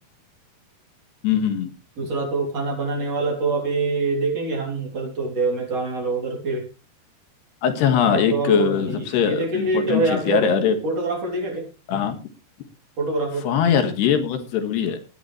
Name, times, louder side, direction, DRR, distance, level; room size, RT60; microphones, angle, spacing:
voice 1, 1.2-1.7 7.6-10.8 11.9-12.2 13.4-15.0, left 8 dB, 80° left, 7 dB, 3.7 m, -21 dB
voice 2, 2.0-6.7 8.1-10.6 10.8-11.7 13.0-13.5, right 3 dB, 40° right, 1 dB, 4.1 m, -25 dB
17.0 x 11.0 x 3.2 m, 0.32 s
omnidirectional pair, 4.7 m